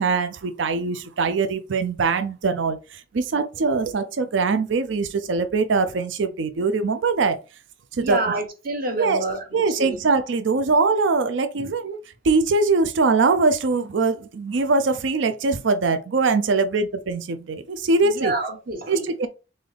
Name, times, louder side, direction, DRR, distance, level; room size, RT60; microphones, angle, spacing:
voice 1, 0.0-7.4 8.0-8.4 9.0-9.2 9.5-12.0 12.2-18.3 18.9-19.3, right 4 dB, 70° right, 0.5 m, -22 dB
voice 2, 8.0-10.0 11.6-11.7 18.0-19.0, right 2 dB, 50° right, 1.2 m, -28 dB
3.9 x 3.8 x 3.3 m
head